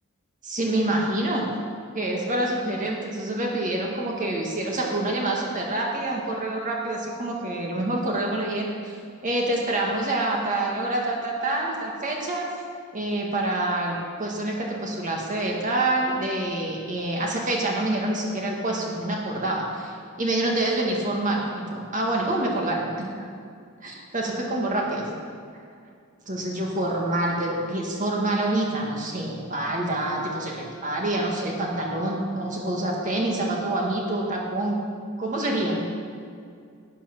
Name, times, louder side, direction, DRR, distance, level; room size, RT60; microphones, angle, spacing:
voice 1, 0.4-1.5 1.9-9.0 9.2-12.5 12.9-23.3 23.8-25.0 26.2-34.8 35.2-35.9, right 1 dB, 35° right, -1 dB, 2.0 m, -27 dB
11.5 x 8.1 x 6.1 m, 2.3 s
head